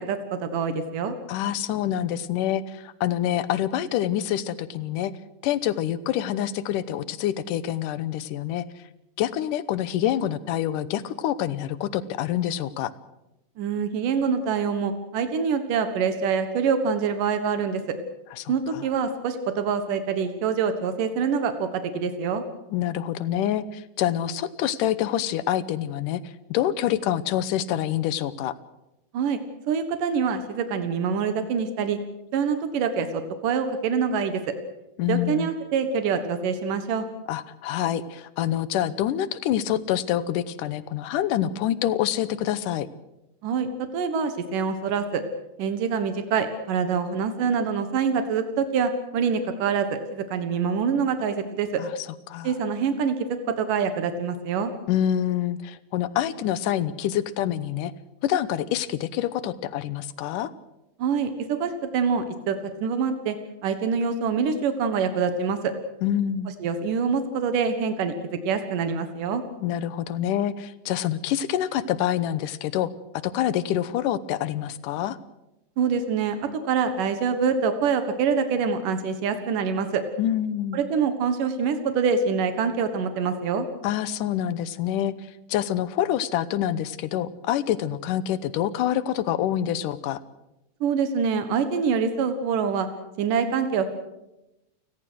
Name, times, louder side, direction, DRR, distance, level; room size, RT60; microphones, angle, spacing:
voice 1, 0.0-1.1 13.6-17.8 18.5-22.4 29.1-29.4 29.7-32.0 32.3-34.4 35.1-37.1 43.4-45.2 45.6-51.8 52.4-53.2 53.5-54.7 61.0-63.4 63.6-65.7 66.6-69.4 75.8-76.4 76.7-80.0 80.7-83.7 90.8-92.9 93.2-93.9, right 6 dB, 85° right, 9 dB, 3.1 m, -25 dB
voice 2, 1.3-5.1 5.4-8.7 9.2-12.9 18.3-18.9 22.7-28.5 35.0-35.5 37.3-42.9 51.8-51.9 52.3-52.6 54.9-57.9 58.2-60.5 66.0-66.5 69.6-72.9 73.2-75.2 80.2-80.8 83.8-85.1 85.5-90.2, left 11 dB, 85° left, 16 dB, 2.5 m, -26 dB
29.5 x 19.0 x 6.3 m, 0.91 s
omnidirectional pair, 3.7 m